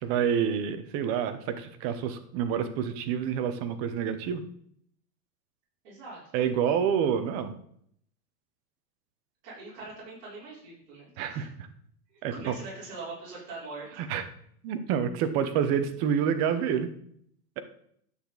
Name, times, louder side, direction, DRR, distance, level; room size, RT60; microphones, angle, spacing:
voice 1, 0.0-4.4 6.3-7.5 11.2-11.5 12.2-12.5 14.1-14.2 14.6-16.9, right 8 dB, 30° right, 10 dB, 0.8 m, -28 dB
voice 2, 5.8-6.2 9.4-11.5 12.1-14.1, right 3 dB, 50° right, -7 dB, 4.2 m, -43 dB
9.8 x 6.6 x 4.0 m, 0.66 s
supercardioid pair, 150°, 49 cm